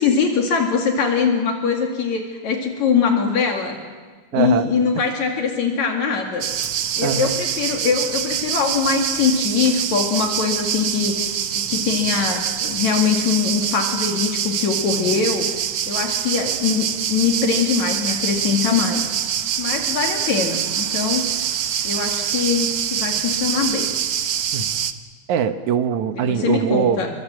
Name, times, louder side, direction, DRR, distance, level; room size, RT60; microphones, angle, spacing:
voice 1, 0.0-3.8 4.3-6.5 7.0-11.3 11.6-15.5 15.9-19.2 19.6-21.3 21.8-23.9 26.3-27.1, left 6 dB, 70° left, 2 dB, 3.4 m, -22 dB
voice 2, 4.3-4.7 5.0-5.1 7.0-7.3 24.5-24.8 25.3-27.0, right 7 dB, 80° right, 8 dB, 2.7 m, -22 dB
sound 1, 6.4-24.9, right 9 dB, 60° right, 1.5 m, -25 dB
29.5 x 24.0 x 7.6 m, 1.4 s
omnidirectional pair, 3.3 m